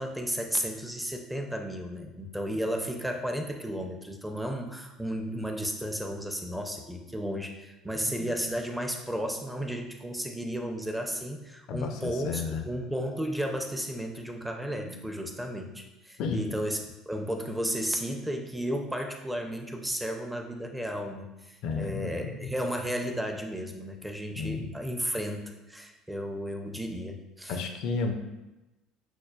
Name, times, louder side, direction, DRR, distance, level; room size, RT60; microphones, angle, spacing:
voice 1, 0.0-16.8 17.1-27.6, equal, 5° right, 3 dB, 0.5 m, -33 dB
voice 2, 8.0-8.3 11.7-12.6 14.8-15.0 16.2-16.5 21.6-22.5 24.4-24.7 27.5-28.1, left 4 dB, 60° left, 5 dB, 0.4 m, -33 dB
6.0 x 2.2 x 2.2 m, 1.0 s
hypercardioid pair, 65°, 0 cm